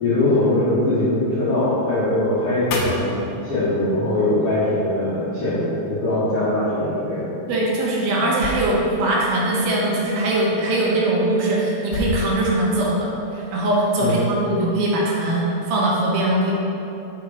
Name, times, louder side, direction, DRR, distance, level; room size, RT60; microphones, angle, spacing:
voice 1, 0.0-7.2 14.0-14.2, left 1 dB, 50° left, -12 dB, 1.9 m, -21 dB
sound 1, 2.7-4.1 8.4-10.8 11.9-14.7, left 2 dB, 80° left, 1.6 m, -33 dB
voice 2, 7.5-16.5, right 1 dB, 75° right, -4 dB, 2.8 m, -21 dB
7.4 x 5.5 x 4.9 m, 2.9 s
omnidirectional pair, 4.6 m